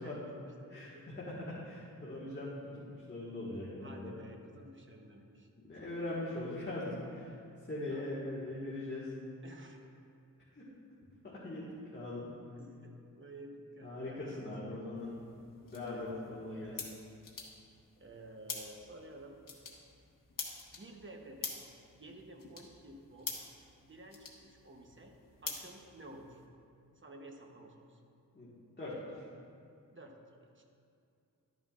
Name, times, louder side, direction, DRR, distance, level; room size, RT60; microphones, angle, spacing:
voice 1, 0.0-1.0 3.8-5.5 7.9-8.1 9.4-9.8 12.6-14.8 15.9-16.2 16.4-16.9 18.0-19.4 20.7-21.6 21.9-23.4 23.8-25.1 25.4-26.4 26.9-28.0 29.9-30.2 30.5-30.6, right 1 dB, 35° right, 2 dB, 1.0 m, -52 dB
voice 2, 0.7-4.1 5.6-7.3 7.7-9.1 10.5-10.7 11.2-11.7 11.9-12.3 13.8-15.1 15.6-16.7 28.3-28.5 28.8-29.3, left 2 dB, 30° left, -9 dB, 1.6 m, -41 dB
sound 1, 15.0-26.5, left 4 dB, 70° left, 1.3 m, -47 dB
12.0 x 9.2 x 2.5 m, 2.5 s
wide cardioid pair, 110°, 33 cm